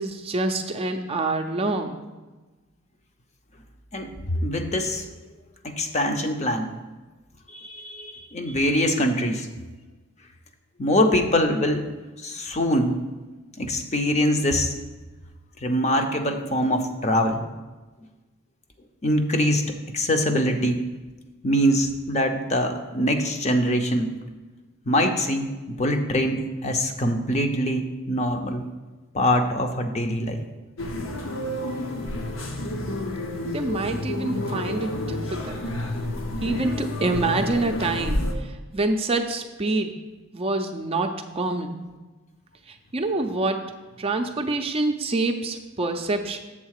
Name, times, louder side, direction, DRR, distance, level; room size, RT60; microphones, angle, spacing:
voice 1, 0.0-2.1 33.5-35.7 36.4-38.2 38.7-40.0 40.3-41.8 42.9-43.6 44.0-46.4, right 2 dB, 30° right, 5 dB, 0.5 m, -26 dB
voice 2, 3.9-5.1 5.6-6.7 7.5-9.5 10.8-11.9 12.2-13.0 13.6-14.7 15.6-17.4 19.0-20.8 21.4-24.1 24.9-28.6 29.1-30.4, equal, 35° left, 5 dB, 0.6 m, -23 dB
sound 1, 30.8-38.3, left 1 dB, 70° left, 0.8 m, -30 dB
7.3 x 3.9 x 6.4 m, 1.2 s
head